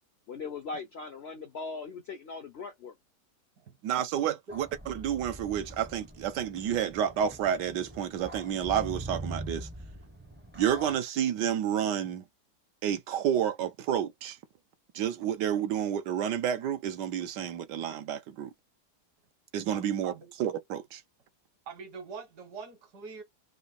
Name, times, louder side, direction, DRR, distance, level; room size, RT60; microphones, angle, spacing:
voice 1, 0.3-2.9, left 4 dB, 70° left, 0.6 m, -39 dB
voice 2, 3.8-9.7 10.5-12.2 12.8-14.4 14.9-18.5 19.5-20.1 20.4-21.0, right 9 dB, 85° right, 1.3 m, -30 dB
sound 1, 4.5-11.0, right 1 dB, 15° right, 0.3 m, -43 dB
voice 3, 19.7-20.3 21.7-23.2, right 5 dB, 65° right, 1.9 m, -44 dB
3.8 x 2.6 x 3.9 m
omnidirectional pair, 1.8 m